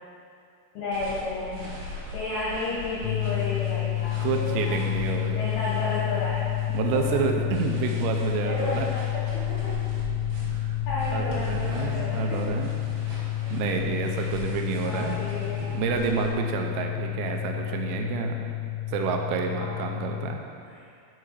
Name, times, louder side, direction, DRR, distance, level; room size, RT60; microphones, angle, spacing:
voice 1, 0.7-4.8 5.3-6.4 6.8-7.2 8.4-9.9 10.9-12.5 13.4-13.5 14.8-15.7 19.5-19.8 20.7-20.8, left 3 dB, 70° left, -8 dB, 2.5 m, -32 dB
sound 1, 0.9-16.3, right 1 dB, 60° right, 3.0 m, -40 dB
sound 2, 3.0-20.4, left 16 dB, 85° left, 2.7 m, -30 dB
voice 2, 4.2-5.4 6.7-8.9 10.4-10.8 11.1-12.7 13.5-15.2 15.7-18.3 18.9-20.4, right 7 dB, 90° right, 3 dB, 3.3 m, -29 dB
6.8 x 6.2 x 4.7 m, 2.4 s
omnidirectional pair, 5.9 m